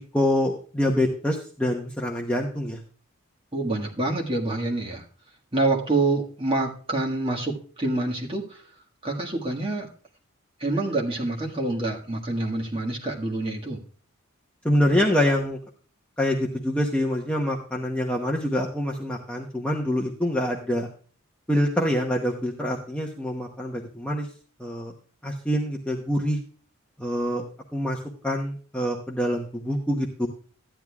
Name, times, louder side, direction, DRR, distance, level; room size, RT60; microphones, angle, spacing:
voice 1, 0.1-2.8 14.6-15.6 16.2-20.9 21.5-24.3 24.6-24.9 25.2-26.4 27.0-27.4 27.7-28.0 28.2-30.3, left 1 dB, 5° left, 0 dB, 0.9 m, -25 dB
voice 2, 3.5-5.0 5.5-8.6 9.0-9.9 10.6-13.8, right 2 dB, 25° right, -1 dB, 1.6 m, -26 dB
13.5 x 10.0 x 2.3 m, 0.40 s
head